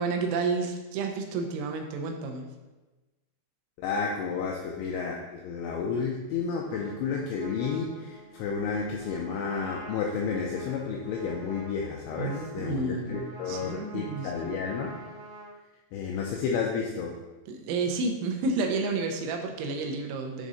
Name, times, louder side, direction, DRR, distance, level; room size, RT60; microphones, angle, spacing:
voice 1, 0.0-2.5 12.2-14.5 17.5-20.5, right 4 dB, 85° right, 3 dB, 3.5 m, -31 dB
voice 2, 3.8-14.9 15.9-17.2, left 5 dB, 90° left, -1 dB, 2.6 m, -31 dB
Trumpet, 6.6-15.5, right 1 dB, 60° right, 1.6 m, -47 dB
10.5 x 3.7 x 4.1 m, 1.2 s
omnidirectional pair, 5.9 m